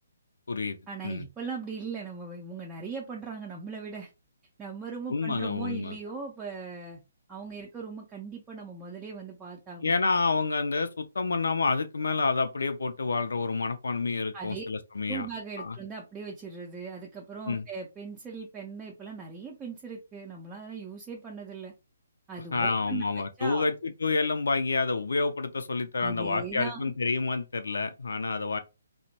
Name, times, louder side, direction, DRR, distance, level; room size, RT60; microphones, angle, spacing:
voice 1, 0.9-4.1 4.6-7.0 7.3-9.9 14.3-14.6 15.1-21.7 22.3-23.0 23.4-23.7 25.9-26.9, right 5 dB, 10° right, 0.5 m, -39 dB
voice 2, 5.1-6.0 9.8-15.3 15.6-15.8 17.5-17.6 22.5-28.6, left 4 dB, 60° left, 0.4 m, -28 dB
2.8 x 2.0 x 2.7 m
figure-of-eight pair, 135°, 0 cm